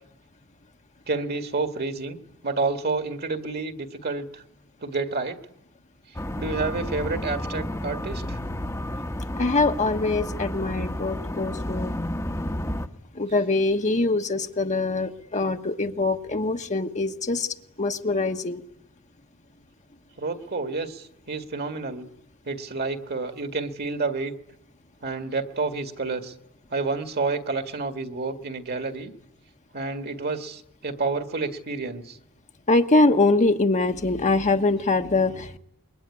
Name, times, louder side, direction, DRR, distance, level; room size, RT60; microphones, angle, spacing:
voice 1, 1.1-2.2 2.4-4.4 4.8-5.4 6.4-8.4 20.2-22.1 22.4-24.4 25.0-26.3 26.7-29.1 29.7-32.2, right 3 dB, 45° right, 8 dB, 1.9 m, -29 dB
sound 1, 6.1-12.9, left 1 dB, 15° left, 1.1 m, -31 dB
voice 2, 9.4-11.9 13.1-18.6 32.7-35.6, left 2 dB, 35° left, 6 dB, 1.2 m, -23 dB
27.0 x 22.0 x 9.8 m, 0.80 s
head